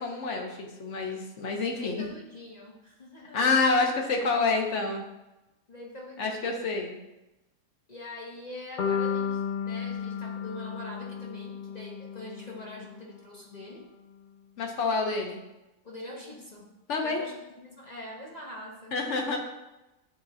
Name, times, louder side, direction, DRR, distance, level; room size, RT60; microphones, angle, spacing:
voice 1, 0.0-2.0 3.3-5.0 6.2-6.9 14.6-15.4 16.9-17.2 18.9-19.4, left 3 dB, 55° left, 2 dB, 1.1 m, -27 dB
voice 2, 1.8-3.5 5.7-6.6 7.9-13.9 15.8-16.7 17.0-19.0, left 1 dB, 35° left, -2 dB, 0.7 m, -44 dB
sound 1, 8.8-12.9, left 7 dB, 85° left, 0.4 m, -33 dB
9.2 x 3.8 x 2.7 m, 0.97 s
omnidirectional pair, 1.6 m